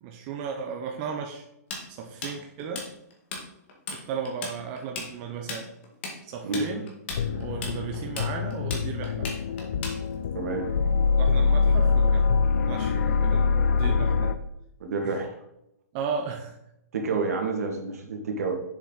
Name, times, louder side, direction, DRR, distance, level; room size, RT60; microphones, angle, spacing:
voice 1, 0.0-1.4 1.9-2.9 3.9-5.7 6.2-6.9 7.3-9.3 11.2-12.3 12.7-14.4 15.1-15.2 15.9-16.6, right 6 dB, 25° right, 2 dB, 0.6 m, -35 dB
Tools, 1.7-3.4 3.7-4.0 4.3-10.3, left 3 dB, 40° left, 2.2 m, -36 dB
sound 1, 7.1-14.3, left 5 dB, 60° left, 0.6 m, -24 dB
voice 2, 10.3-10.7 14.8-15.4 16.9-18.5, right 3 dB, 65° right, 2 dB, 2.1 m, -29 dB
7.2 x 6.7 x 4.0 m, 0.83 s
hypercardioid pair, 170°, 9 cm